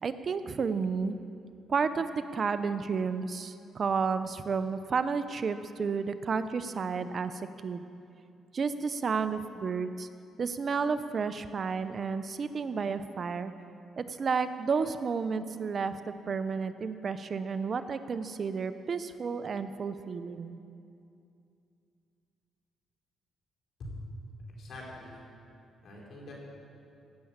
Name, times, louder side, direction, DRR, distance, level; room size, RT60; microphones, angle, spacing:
voice 1, 0.0-1.2 1.7-7.8 8.5-10.1 10.4-13.5 14.0-16.0 16.3-20.6, right 5 dB, 45° right, 11 dB, 0.6 m, -31 dB
voice 2, 24.6-25.2 25.8-26.3, left 1 dB, 65° left, -3 dB, 4.3 m, -43 dB
16.0 x 7.1 x 8.7 m, 2.6 s
cardioid pair, 90°, 0 cm